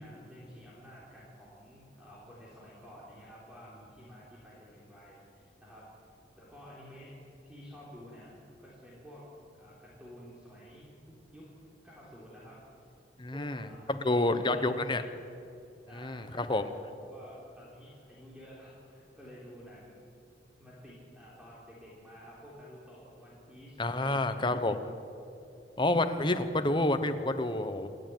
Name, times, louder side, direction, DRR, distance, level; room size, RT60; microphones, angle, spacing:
voice 1, 0.0-7.2 7.4-8.3 8.6-9.3 9.5-11.5 11.8-12.6 13.3-14.8 15.9-20.1 20.6-24.7, equal, 5° right, -7 dB, 3.8 m, -51 dB
voice 2, 13.2-15.0 15.9-16.6 23.8-24.8 25.8-27.9, left 2 dB, 25° left, 9 dB, 1.1 m, -29 dB
28.0 x 11.5 x 9.3 m, 2.7 s
head